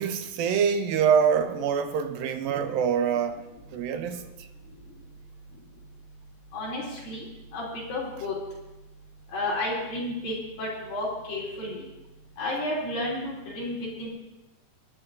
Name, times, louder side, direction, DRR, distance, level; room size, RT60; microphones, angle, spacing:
voice 1, 0.0-3.5 3.7-4.2, right 7 dB, 75° right, 2.4 m, -25 dB
voice 2, 6.5-7.2 7.5-8.3 9.3-11.8 12.4-14.1, left 1 dB, 60° left, 5.0 m, -31 dB
23.5 x 11.0 x 2.7 m
omnidirectional pair, 4.6 m